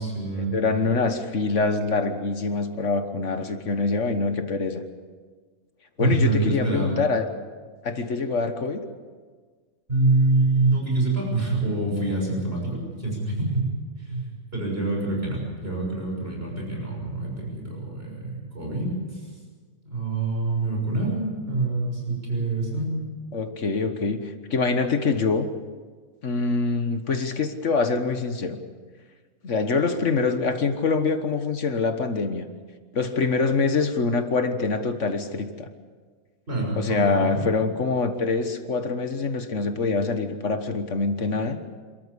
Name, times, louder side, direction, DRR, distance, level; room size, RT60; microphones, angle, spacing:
voice 1, 0.0-0.5 6.0-7.0 9.9-19.2 19.8-22.9 36.5-37.4, right 2 dB, 40° right, -2 dB, 6.8 m, -26 dB
voice 2, 0.5-4.8 6.0-7.3 7.8-8.8 23.3-25.5 26.2-28.6 29.4-32.4 32.9-35.7 36.8-41.6, left 4 dB, 55° left, 8 dB, 1.6 m, -25 dB
27.0 x 14.0 x 8.3 m, 1.5 s
omnidirectional pair, 1.6 m